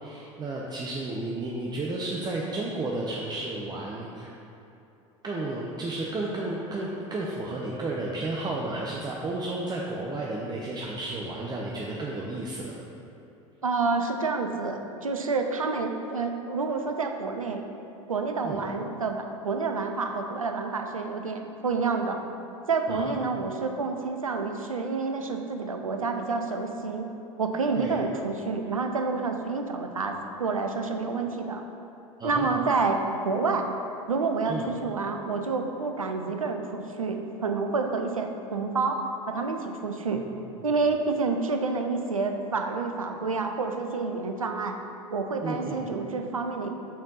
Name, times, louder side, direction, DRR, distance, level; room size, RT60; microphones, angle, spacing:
voice 1, 0.0-4.3 5.2-12.7 18.4-18.6 22.9-23.1 27.8-28.0 32.2-32.5 34.5-34.7 45.4-45.8, right 2 dB, 25° right, -3 dB, 0.7 m, -32 dB
voice 2, 13.6-17.6 18.1-22.2 22.7-27.1 27.4-31.6 32.2-33.7 34.1-39.0 39.3-40.2 40.6-44.8 45.1-46.7, right 4 dB, 85° right, 4 dB, 0.5 m, -28 dB
6.3 x 4.3 x 5.4 m, 2.9 s
figure-of-eight pair, 70°, 17 cm